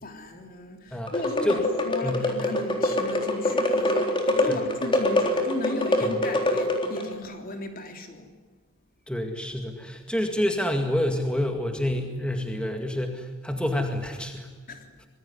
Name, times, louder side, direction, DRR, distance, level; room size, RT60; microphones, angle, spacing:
voice 1, 0.0-8.3 14.7-14.9, left 2 dB, 40° left, 5 dB, 3.3 m, -35 dB
voice 2, 0.9-1.6 2.0-2.3 4.4-4.6 6.1-6.2 9.1-14.5, left 1 dB, 5° left, 4 dB, 2.1 m, -28 dB
sound 1, 1.1-7.1, left 1 dB, 25° left, 3.8 m, -25 dB
26.0 x 21.5 x 9.8 m, 1.4 s
head